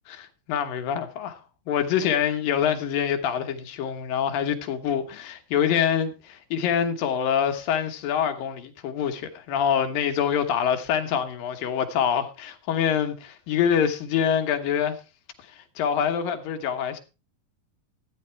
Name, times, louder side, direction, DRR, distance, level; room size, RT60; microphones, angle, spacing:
voice 1, 0.1-1.4 1.7-15.0 15.4-17.0, left 8 dB, 80° left, 3.0 m, -25 dB
13.5 x 9.9 x 4.5 m
omnidirectional pair, 3.9 m